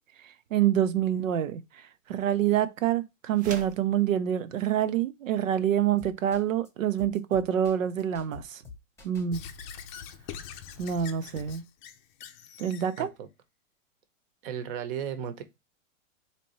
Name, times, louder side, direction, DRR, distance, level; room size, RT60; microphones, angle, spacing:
voice 1, 0.5-1.6 2.1-8.6 9.0-9.4 10.8-11.6 12.6-13.1, right 10 dB, 75° right, 0.7 m, -26 dB
sound 1, 3.3-3.9, right 5 dB, 20° right, 0.6 m, -41 dB
sound 2, 6.0-6.7 7.0-9.5, left 5 dB, 5° left, 1.0 m, -47 dB
Squeak / Writing, 9.3-13.1, left 8 dB, 35° left, 0.6 m, -43 dB
voice 2, 13.0-13.3 14.4-15.4, right 8 dB, 45° right, 1.0 m, -35 dB
4.1 x 2.8 x 3.0 m
hypercardioid pair, 110°, 40 cm